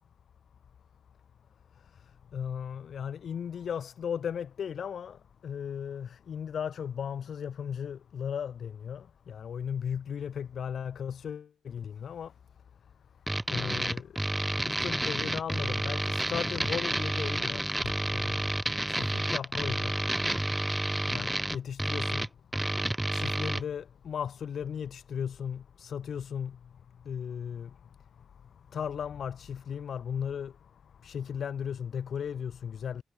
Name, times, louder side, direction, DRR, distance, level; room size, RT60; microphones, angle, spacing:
voice 1, 2.3-5.2 5.4-12.3 13.5-14.1 14.7-17.7 18.1-18.4 18.9-19.9 21.1-22.3 23.1-26.6 27.1-27.7 28.7-30.5 31.0-33.0, left 8 dB, 70° left, 3.7 m, -36 dB
sound 1, 13.3-23.6, right 1 dB, 10° right, 2.5 m, -30 dB
cardioid pair, 75°, 0 cm